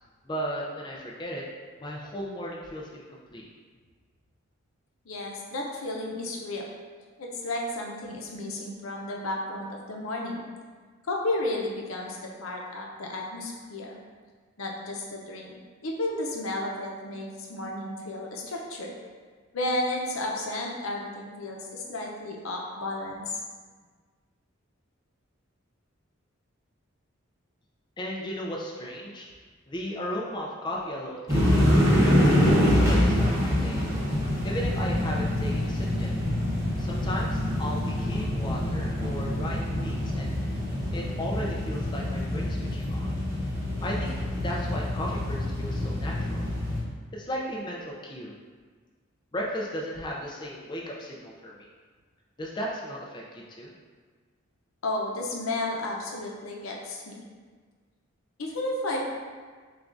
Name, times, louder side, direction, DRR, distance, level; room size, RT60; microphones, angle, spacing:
voice 1, 0.2-1.5 1.8-3.5 28.0-29.3 29.7-31.7 32.0-33.8 34.4-36.1 36.8-40.3 40.9-43.1 43.8-46.5 47.1-48.3 49.3-51.7 52.4-53.7, equal, 20° left, -3 dB, 0.4 m, -35 dB
voice 2, 5.1-6.6 7.2-10.5 11.1-14.0 14.6-15.5 15.8-18.9 19.5-23.4 54.8-57.3 58.4-59.1, left 1 dB, 90° left, -1 dB, 0.7 m, -32 dB
sound 1, 31.3-46.8, left 1 dB, 15° right, 1.0 m, -25 dB
6.5 x 2.3 x 2.6 m, 1.5 s
head